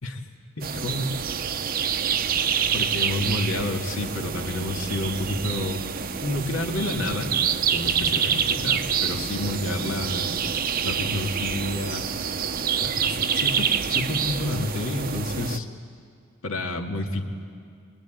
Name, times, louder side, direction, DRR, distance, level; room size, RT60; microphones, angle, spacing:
voice 1, 0.6-1.2 2.7-5.9 6.2-7.4 7.7-10.4 10.8-12.3 12.8-15.7 16.4-17.3, left 1 dB, 80° left, 2 dB, 2.1 m, -29 dB
sound 1, 0.6-15.6, right 7 dB, 45° right, 0.8 m, -27 dB
24.5 x 20.5 x 9.0 m, 2.2 s
head